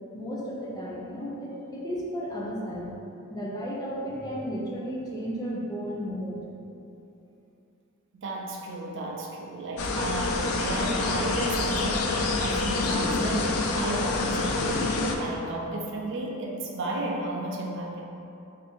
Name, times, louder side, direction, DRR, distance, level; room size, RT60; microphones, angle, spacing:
voice 1, 0.1-2.9 3.3-6.4, equal, 20° left, -4 dB, 0.5 m, -33 dB
voice 2, 8.1-18.0, right 2 dB, 60° right, -1 dB, 0.5 m, -33 dB
sound 1, 9.8-15.1, left 3 dB, 80° left, 0.4 m, -27 dB
3.5 x 2.7 x 4.3 m, 2.8 s
head